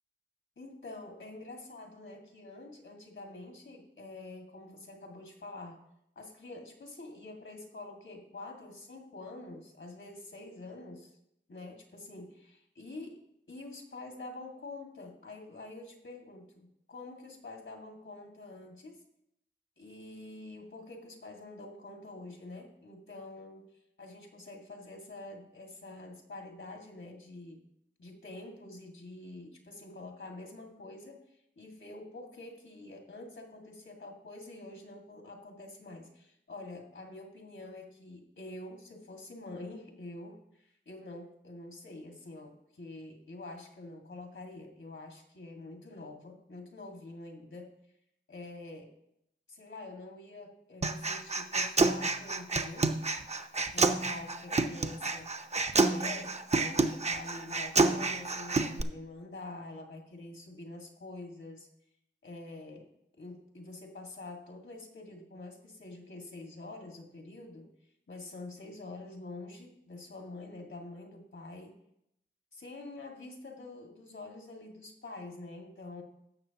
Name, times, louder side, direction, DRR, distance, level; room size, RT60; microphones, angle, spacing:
voice 1, 0.6-5.8 6.2-11.2 11.5-19.0 19.8-23.7 24.0-27.7 28.0-47.7 48.3-48.9 49.5-53.0 53.7-55.3 55.8-61.7 62.2-62.9 63.2-67.7 68.1-71.8 72.5-76.0, left 2 dB, 75° left, 2 dB, 1.9 m, -46 dB
Human voice, 50.8-58.8, right 3 dB, 35° right, 0.6 m, -29 dB
16.0 x 6.6 x 2.9 m, 0.76 s
wide cardioid pair, 70°, 20 cm